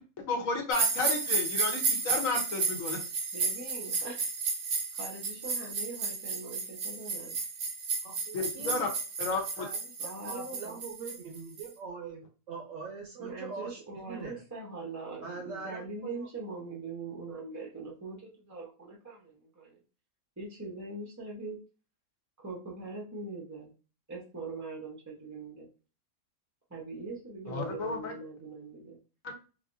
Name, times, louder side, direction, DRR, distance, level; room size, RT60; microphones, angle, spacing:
voice 1, 0.3-3.0 8.3-8.9 9.2-9.6 27.5-28.1, left 3 dB, 65° left, 2 dB, 1.2 m, -32 dB
sound 1, 0.7-11.7, right 4 dB, 85° right, 1.3 m, -32 dB
voice 2, 3.3-4.3 5.0-7.4 10.0-10.8 13.2-19.8 20.4-21.6 22.4-23.7 24.1-25.7 26.7-29.0, right 3 dB, 20° right, -2 dB, 0.5 m, -42 dB
voice 3, 8.0-8.9 9.6-14.4 15.2-16.3, right 4 dB, 65° right, 2 dB, 1.0 m, -43 dB
4.0 x 2.5 x 2.5 m, 0.34 s
omnidirectional pair, 1.5 m